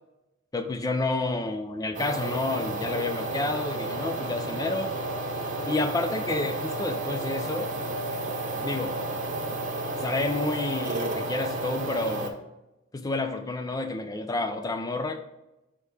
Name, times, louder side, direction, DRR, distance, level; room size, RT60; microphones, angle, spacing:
voice 1, 0.5-4.9 5.7-7.7 8.6-9.0 10.0-12.4 12.9-15.2, left 2 dB, 20° left, 7 dB, 0.4 m, -29 dB
sound 1, 1.9-12.3, right 2 dB, 40° right, 0.9 m, -32 dB
6.5 x 5.5 x 3.3 m, 0.96 s
head